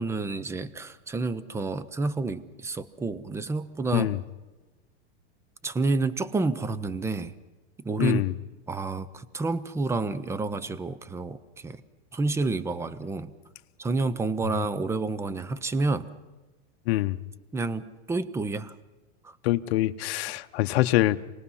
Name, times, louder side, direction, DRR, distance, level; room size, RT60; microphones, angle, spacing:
voice 1, 0.0-4.2 5.6-7.4 7.8-8.2 8.7-11.8 12.1-13.3 13.8-16.1 17.5-18.7, right 3 dB, 10° right, 15 dB, 0.6 m, -29 dB
voice 2, 8.0-8.3 16.9-17.2 19.4-21.2, left 16 dB, 65° left, 10 dB, 0.9 m, -24 dB
27.0 x 19.0 x 5.6 m, 1.2 s
supercardioid pair, 140°, 33 cm